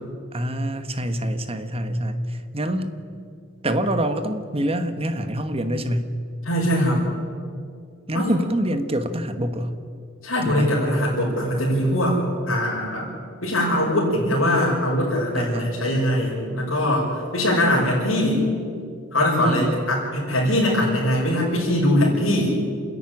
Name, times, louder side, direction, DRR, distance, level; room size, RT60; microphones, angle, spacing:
voice 1, 0.3-2.9 3.6-6.1 8.1-9.7 10.4-10.7 15.3-15.8 19.4-19.8, right 1 dB, 30° right, 9 dB, 1.3 m, -25 dB
voice 2, 6.5-7.0 8.1-8.4 10.2-13.1 13.4-18.5 19.1-22.5, left 1 dB, 85° left, -5 dB, 5.7 m, -22 dB
28.5 x 10.5 x 10.0 m, 2.3 s
head